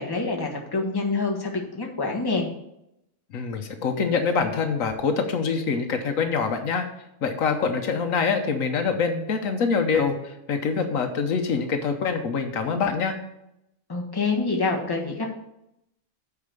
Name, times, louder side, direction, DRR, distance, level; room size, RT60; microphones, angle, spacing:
voice 1, 0.0-2.5 13.9-15.3, left 3 dB, 15° left, 0 dB, 1.3 m, -26 dB
voice 2, 3.3-6.8 7.2-10.1 10.5-13.1, left 5 dB, 75° left, 6 dB, 1.3 m, -25 dB
8.4 x 4.8 x 6.8 m, 0.84 s
omnidirectional pair, 1.4 m